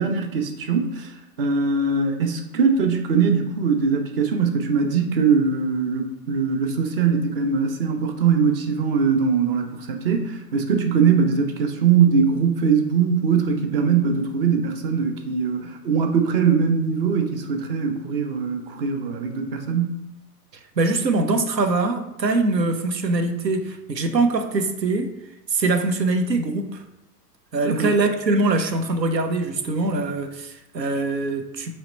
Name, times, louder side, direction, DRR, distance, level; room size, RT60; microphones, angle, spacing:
voice 1, 0.0-20.0 27.6-27.9, right 6 dB, 40° right, 5 dB, 0.5 m, -21 dB
voice 2, 20.8-25.1 25.5-26.8 27.5-31.8, right 3 dB, 90° right, 6 dB, 0.6 m, -23 dB
3.1 x 2.8 x 4.3 m, 0.92 s
figure-of-eight pair, 100°, 49 cm